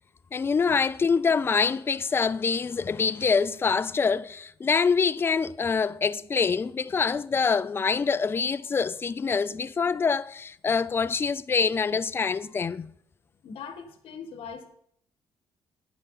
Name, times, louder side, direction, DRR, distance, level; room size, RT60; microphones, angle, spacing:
voice 1, 0.3-12.9, left 5 dB, 25° left, 0.3 m, -25 dB
voice 2, 13.4-14.7, left 6 dB, 65° left, 1.7 m, -40 dB
10.5 x 9.0 x 4.2 m
cardioid pair, 130°, 10 cm